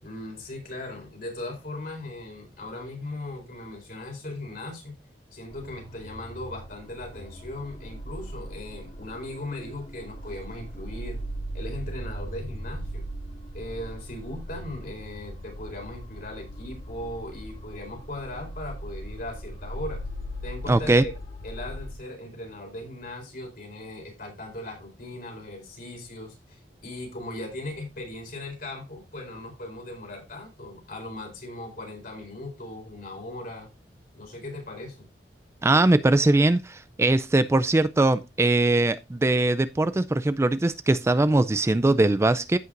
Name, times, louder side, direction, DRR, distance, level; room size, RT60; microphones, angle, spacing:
voice 1, 0.0-5.0 5.3-11.2 11.5-13.1 13.5-20.0 20.4-21.1 21.4-33.7 34.1-35.1, left 1 dB, 55° left, 4.6 m, -38 dB
sound 1, 5.5-21.9, equal, 40° left, 2.2 m, -39 dB
voice 2, 20.7-21.0 35.6-42.6, right 2 dB, 15° right, 0.3 m, -21 dB
15.0 x 5.6 x 2.6 m
head